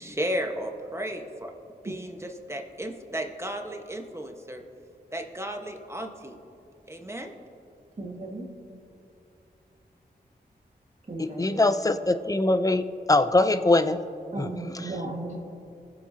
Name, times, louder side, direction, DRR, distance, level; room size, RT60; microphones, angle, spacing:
voice 1, 0.0-1.5 1.8-2.2 2.5-4.6 5.1-6.4 6.9-7.3, equal, 15° right, 3 dB, 1.2 m, -34 dB
voice 2, 8.0-8.5 11.1-11.7 14.3-15.4, right 2 dB, 45° right, -2 dB, 1.7 m, -35 dB
voice 3, 11.2-12.8 13.1-14.0, left 2 dB, 20° left, 11 dB, 0.5 m, -22 dB
20.5 x 7.6 x 2.8 m, 2.7 s
cardioid pair, 50°, 18 cm